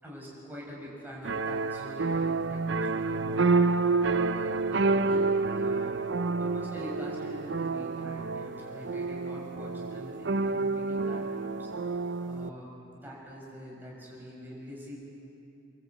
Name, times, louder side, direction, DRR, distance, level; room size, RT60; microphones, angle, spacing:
voice 1, 0.0-14.9, equal, 10° right, -5 dB, 6.2 m, -45 dB
sound 1, 1.2-12.5, right 3 dB, 65° right, 0.6 m, -29 dB
29.5 x 14.0 x 8.5 m, 2.9 s
head